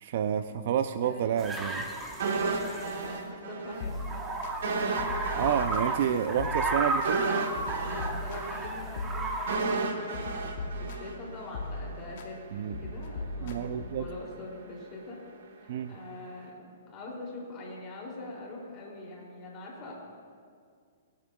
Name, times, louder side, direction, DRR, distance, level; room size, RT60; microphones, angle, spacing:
voice 1, 0.0-1.9 5.3-7.3 12.5-12.8 13.4-14.1 15.7-16.0, right 9 dB, 55° right, 10 dB, 0.4 m, -29 dB
voice 2, 1.0-1.6 2.1-4.0 7.8-15.2 15.5-19.9, left 2 dB, 25° left, -3 dB, 2.7 m, -43 dB
sound 1, 1.4-3.1 3.8-9.6, right 3 dB, 15° right, 0.8 m, -34 dB
sound 2, 2.2-3.8 4.1-4.2 4.6-11.7 12.0-12.1, right 4 dB, 70° right, 1.2 m, -33 dB
sound 3, 3.8-4.5 5.0-6.0 6.4-7.1 7.5-9.7 10.1-11.2 11.5-12.3 12.7-14.1, left 2 dB, 55° left, 1.0 m, -38 dB
19.0 x 8.8 x 2.3 m, 2.1 s
hypercardioid pair, 150°, 0 cm